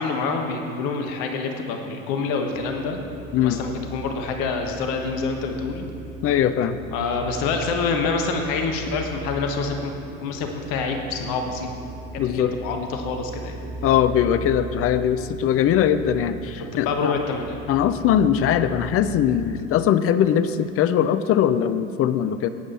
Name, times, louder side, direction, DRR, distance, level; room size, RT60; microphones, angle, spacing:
voice 1, 0.0-3.0 3.4-5.9 6.9-9.9 10.2-11.7 12.1-13.6 16.6-17.6, left 4 dB, 50° left, 4 dB, 1.4 m, -27 dB
sound 1, 2.5-19.6, right 2 dB, 25° right, 2.8 m, -38 dB
voice 2, 6.2-6.8 12.2-12.5 13.8-17.1 17.7-22.5, left 9 dB, 35° left, 12 dB, 0.6 m, -21 dB
15.0 x 10.0 x 4.3 m, 2.4 s
figure-of-eight pair, 75°, 42 cm